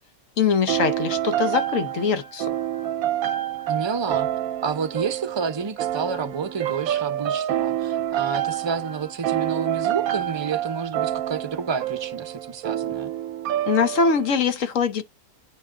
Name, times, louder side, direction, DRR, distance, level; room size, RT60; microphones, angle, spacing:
voice 1, 0.4-2.5 13.7-15.0, left 5 dB, 65° left, 1.2 m, -22 dB
sound 1, 0.7-14.4, right 12 dB, 70° right, 1.0 m, -27 dB
voice 2, 3.7-4.3 4.6-13.1, right 5 dB, 25° right, 0.7 m, -30 dB
9.7 x 3.4 x 3.7 m
omnidirectional pair, 1.6 m